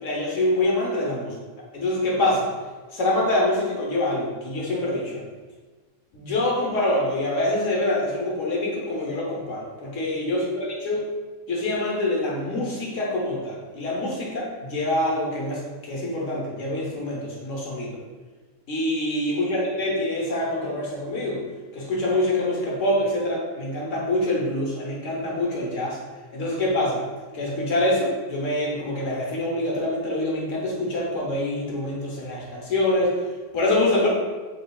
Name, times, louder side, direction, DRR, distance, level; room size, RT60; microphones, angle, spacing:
voice 1, 0.0-1.3 1.7-2.5 2.9-5.2 6.1-11.1 11.5-18.0 18.7-21.5 21.7-26.0 26.3-27.0 27.3-33.2 33.5-34.1, left 1 dB, 75° left, -3 dB, 1.3 m, -25 dB
5.5 x 3.4 x 2.3 m, 1.4 s
omnidirectional pair, 1.3 m